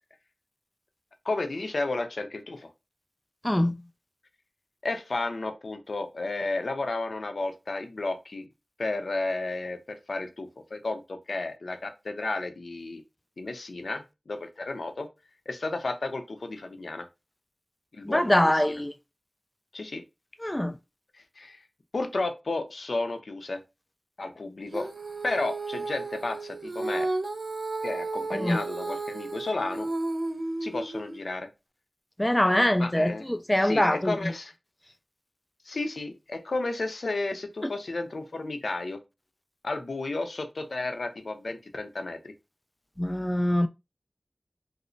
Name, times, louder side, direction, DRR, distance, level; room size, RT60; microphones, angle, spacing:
voice 1, 1.2-2.7 4.8-8.4 8.8-13.0 13.4-15.1 15.5-17.1 17.9-18.8 19.7-20.0 21.1-21.6 21.9-23.6 24.2-24.9 25.2-27.1 27.8-29.9 30.6-31.5 32.8-33.2 33.6-34.5 35.7-39.0 39.6-42.3, left 2 dB, 85° left, 0.5 m, -32 dB
voice 2, 3.4-3.8 18.0-18.9 20.4-20.8 28.3-28.6 32.2-34.3 37.6-37.7 43.0-43.7, left 1 dB, 20° left, 0.3 m, -24 dB
Female singing, 24.7-31.2, right 2 dB, 65° right, 0.6 m, -33 dB
3.1 x 2.0 x 3.8 m
wide cardioid pair, 40°, 0 cm